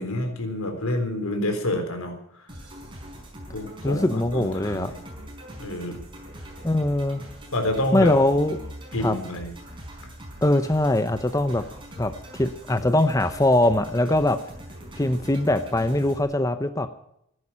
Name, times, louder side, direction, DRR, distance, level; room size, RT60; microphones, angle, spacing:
voice 1, 0.0-2.1 3.5-5.0 5.6-6.0 7.5-8.1 8.9-9.5, left 1 dB, 85° left, 5 dB, 3.8 m, -28 dB
sound 1, 2.5-16.2, equal, 25° right, 4.7 m, -42 dB
voice 2, 3.8-4.9 6.6-7.2 7.9-8.6 9.0-9.2 10.4-11.6 12.0-14.4 15.0-16.9, left 1 dB, 15° left, 10 dB, 0.7 m, -22 dB
15.0 x 11.0 x 8.6 m, 0.76 s
head